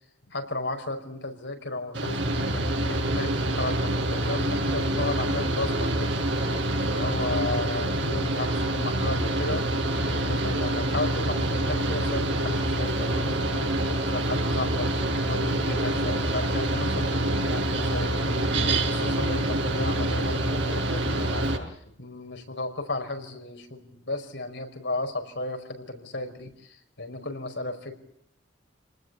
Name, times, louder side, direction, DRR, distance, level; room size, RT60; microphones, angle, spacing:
voice 1, 0.3-6.1 6.9-9.6 10.1-14.9 15.3-18.5 18.9-21.5 22.0-28.0, left 2 dB, 65° left, 4 dB, 5.2 m, -34 dB
Mechanical fan, 1.9-21.6, right 1 dB, 75° right, 5.9 m, -26 dB
28.0 x 20.0 x 8.3 m, 0.74 s
head